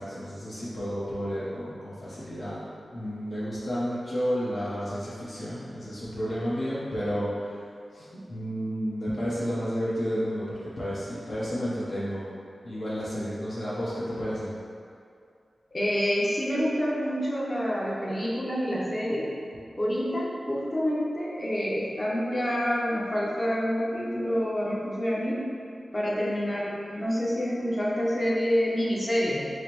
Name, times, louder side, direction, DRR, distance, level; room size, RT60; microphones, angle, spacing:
voice 1, 0.0-2.6 2.9-7.6 7.9-12.3 12.6-14.5, equal, 65° left, -10 dB, 0.8 m, -31 dB
voice 2, 15.7-19.3 19.8-25.4 25.9-29.4, equal, 25° left, -5 dB, 0.7 m, -27 dB
4.8 x 2.1 x 3.0 m, 2.4 s
wide cardioid pair, 85°, 0 cm